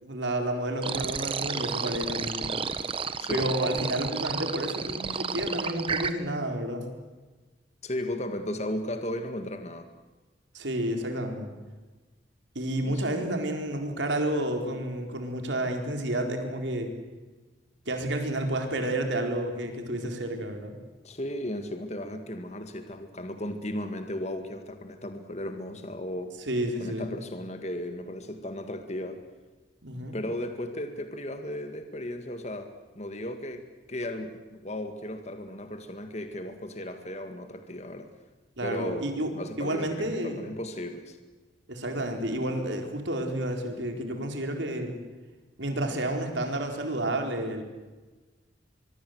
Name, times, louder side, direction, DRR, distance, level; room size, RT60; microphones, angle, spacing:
voice 1, 0.0-2.5 3.3-6.9 10.5-11.5 12.5-16.9 17.9-20.7 26.5-27.1 29.8-30.2 38.6-39.3 39.6-40.4 41.7-45.0 45.6-47.6, right 1 dB, 75° right, 4 dB, 4.4 m, -30 dB
sound 1, 0.8-6.1, right 5 dB, 30° right, 1.2 m, -32 dB
voice 2, 3.2-3.5 7.8-9.9 12.8-13.3 21.0-26.3 26.8-29.2 30.1-38.1 38.6-39.1 39.3-41.2, left 1 dB, 35° left, 7 dB, 1.9 m, -35 dB
24.0 x 23.5 x 8.0 m, 1.2 s
head